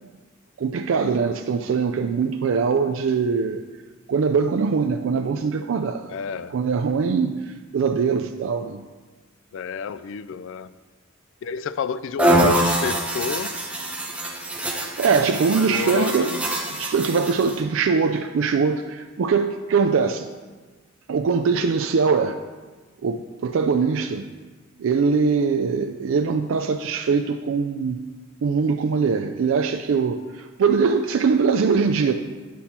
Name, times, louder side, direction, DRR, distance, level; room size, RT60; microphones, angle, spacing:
voice 1, 0.6-3.7 4.1-6.0 6.5-8.8 14.7-16.4 16.7-20.3 21.1-22.4 23.0-24.3 24.8-28.0 28.4-32.1, right 5 dB, 65° right, 5 dB, 0.4 m, -22 dB
voice 2, 6.1-6.6 9.5-10.7 11.4-13.5 15.4-16.4, left 6 dB, 65° left, 14 dB, 0.3 m, -30 dB
sound 1, 12.2-17.6, right 1 dB, 5° right, 0.8 m, -24 dB
8.5 x 5.7 x 4.3 m, 1.3 s
head